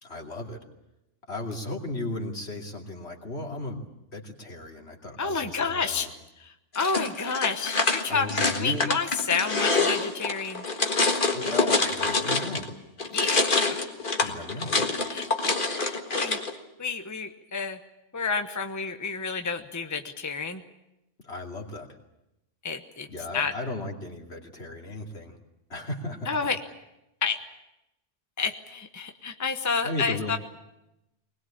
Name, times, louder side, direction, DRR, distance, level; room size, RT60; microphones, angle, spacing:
voice 1, 0.0-0.6 1.3-6.1 8.1-8.9 11.3-12.7 14.2-14.8 21.2-21.9 23.1-25.4 25.7-26.3 29.8-30.4, left 2 dB, 65° left, 1 dB, 3.0 m, -35 dB
voice 2, 5.2-6.1 6.4-10.6 13.1-13.9 14.2-14.3 15.1-16.4 16.8-17.8 18.1-20.6 22.6-23.1 23.3-23.5 26.3-26.6 27.2-27.4 28.4-30.4, left 5 dB, 15° left, 7 dB, 1.0 m, -30 dB
sound 1, 6.7-12.7 13.0-16.5, left 3 dB, 45° left, 1.9 m, -26 dB
21.5 x 20.5 x 8.7 m, 0.90 s
omnidirectional pair, 1.2 m